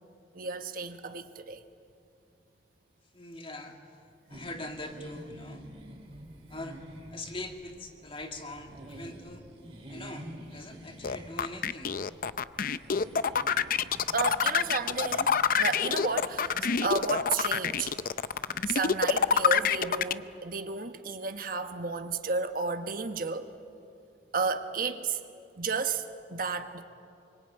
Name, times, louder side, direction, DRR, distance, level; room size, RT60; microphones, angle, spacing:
voice 1, 0.3-1.6 14.1-16.5 16.8-18.0 18.7-23.5 24.3-25.2 25.6-26.0 26.3-26.8, right 4 dB, 50° right, 1.2 m, -32 dB
voice 2, 3.1-3.8 4.3-5.6 6.5-6.8 7.1-9.4 9.9-12.0, left 1 dB, 30° left, 2.2 m, -42 dB
sound 1, 4.3-20.1, equal, 35° right, 3.5 m, -49 dB
sound 2, 11.0-20.1, left 6 dB, 50° left, 0.6 m, -26 dB
25.0 x 24.0 x 9.0 m
head